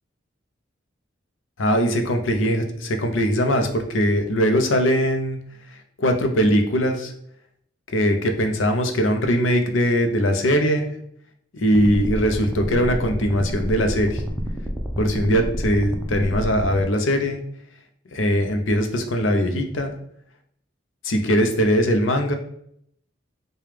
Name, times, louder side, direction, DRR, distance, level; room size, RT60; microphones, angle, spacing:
voice 1, 1.6-5.4 5.7-7.1 7.9-10.8 11.5-14.2 15.0-17.4 18.1-19.9 21.0-22.4, equal, 90° left, 6 dB, 0.6 m, -21 dB
sound 1, 11.7-16.8, equal, ahead, 0.4 m, -29 dB
4.9 x 2.3 x 3.2 m, 0.69 s
head